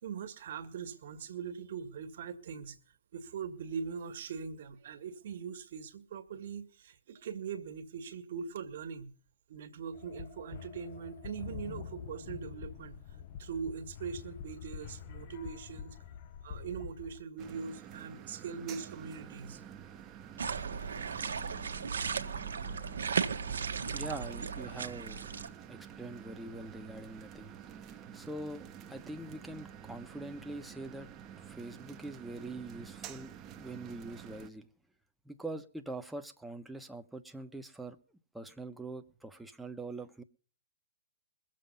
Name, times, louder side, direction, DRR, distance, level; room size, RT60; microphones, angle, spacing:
voice 1, 0.0-2.8 3.1-9.1 9.5-13.0 13.4-16.0 16.4-19.6 20.7-21.2 22.0-22.2, right 6 dB, 55° right, 1.9 m, -41 dB
sound 1, 9.9-17.2, left 8 dB, 40° left, 0.9 m, -46 dB
sound 2, 17.4-34.5, right 9 dB, 25° right, 1.1 m, -49 dB
sound 3, 20.4-25.5, right 6 dB, 70° right, 1.4 m, -36 dB
voice 2, 23.9-25.3 25.7-27.6 28.1-34.7 35.2-38.0 38.3-40.2, right 2 dB, 5° right, 1.1 m, -44 dB
22.0 x 7.6 x 5.6 m
figure-of-eight pair, 125°, 0 cm